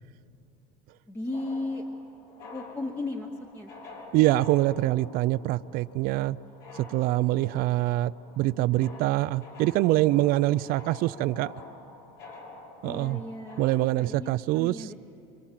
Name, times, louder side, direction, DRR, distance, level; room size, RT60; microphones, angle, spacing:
voice 1, 1.1-1.8 2.5-3.3 3.5-3.7 12.8-14.9, left 2 dB, 10° left, 4 dB, 1.0 m, -35 dB
sound 1, 1.3-13.8, left 3 dB, 70° left, 6.3 m, -47 dB
voice 2, 4.1-6.4 6.7-11.5 12.8-13.2 13.6-14.9, right 16 dB, 55° right, 16 dB, 0.5 m, -25 dB
26.0 x 24.5 x 7.6 m, 2.7 s
cardioid pair, 145°, 19 cm